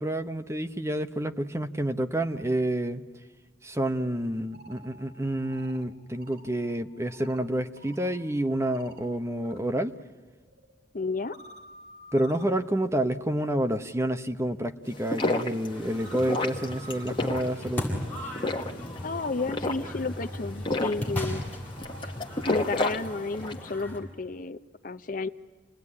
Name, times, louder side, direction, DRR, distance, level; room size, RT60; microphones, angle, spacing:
voice 1, 0.0-3.0 3.6-10.0 12.1-17.9, right 1 dB, 15° right, 7 dB, 1.0 m, -29 dB
sound 1, 4.3-9.6 9.9-23.2, right 2 dB, 65° right, 5.3 m, -53 dB
voice 2, 10.9-11.4 19.0-21.5 22.4-25.3, left 3 dB, 45° left, 11 dB, 0.8 m, -32 dB
sound 2, 14.9-23.7, left 2 dB, 25° left, 1.8 m, -32 dB
sound 3, 15.7-24.0, left 1 dB, 10° left, 7.5 m, -37 dB
28.5 x 20.0 x 9.8 m, 1.3 s
head